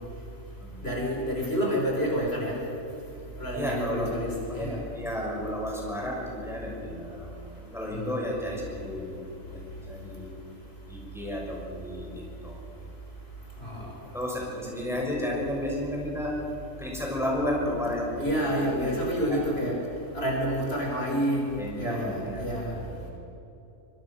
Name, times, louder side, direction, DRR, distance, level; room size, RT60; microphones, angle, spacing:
voice 1, 0.8-2.6 3.4-4.8 7.9-8.1 13.6-13.9 18.2-19.8 20.1-22.7, equal, 50° left, -1 dB, 4.6 m, -28 dB
voice 2, 3.5-7.3 7.6-9.6 9.9-10.3 10.9-12.6 14.1-16.4 16.8-19.0 19.3-19.4 21.6-22.4 22.7-23.1, left 1 dB, ahead, -3 dB, 6.3 m, -33 dB
25.0 x 24.0 x 6.4 m, 2.9 s
omnidirectional pair, 1.4 m